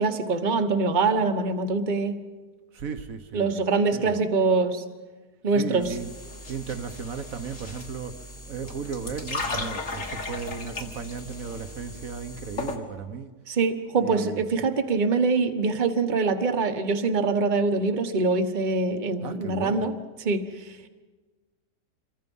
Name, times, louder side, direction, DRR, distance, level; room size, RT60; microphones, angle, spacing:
voice 1, 0.0-2.2 3.3-4.8 5.4-5.9 13.5-19.9 20.2-20.5, right 4 dB, 30° right, 7 dB, 1.2 m, -24 dB
voice 2, 2.7-3.6 3.9-4.2 5.5-6.1 6.5-13.3 14.0-14.4 19.2-19.9, right 6 dB, 55° right, 9 dB, 1.4 m, -35 dB
sound 1, 5.8-12.8, left 2 dB, 45° left, 2.6 m, -36 dB
28.0 x 23.0 x 5.5 m, 1.3 s
omnidirectional pair, 1.9 m